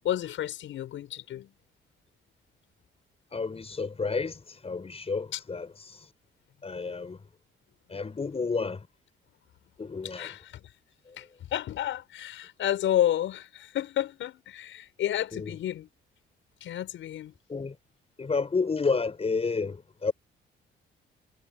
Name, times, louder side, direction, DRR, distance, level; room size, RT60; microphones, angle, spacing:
voice 1, 0.0-1.5 5.3-5.4 9.9-10.6 11.2-15.9 16.6-17.3, left 11 dB, 75° left, 6.6 m, -31 dB
voice 2, 3.3-6.1 6.6-7.2 7.9-8.9 9.8-10.3 11.1-11.2 15.3-15.6 17.5-17.8 18.2-20.1, left 4 dB, 30° left, 5.5 m, -31 dB
cardioid pair, 90°, 20 cm